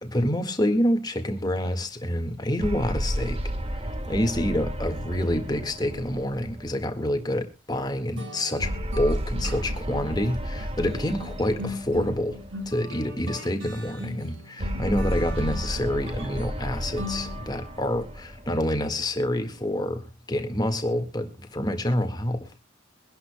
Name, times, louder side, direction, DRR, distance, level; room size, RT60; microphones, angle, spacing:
voice 1, 0.0-12.4 12.7-22.5, left 1 dB, 20° left, 1.7 m, -27 dB
sound 1, 2.6-7.2 8.6-13.0 14.6-19.2, equal, 30° right, 1.5 m, -32 dB
sound 2, 8.2-17.8, left 2 dB, 70° right, 5.6 m, -39 dB
23.0 x 11.5 x 2.2 m
head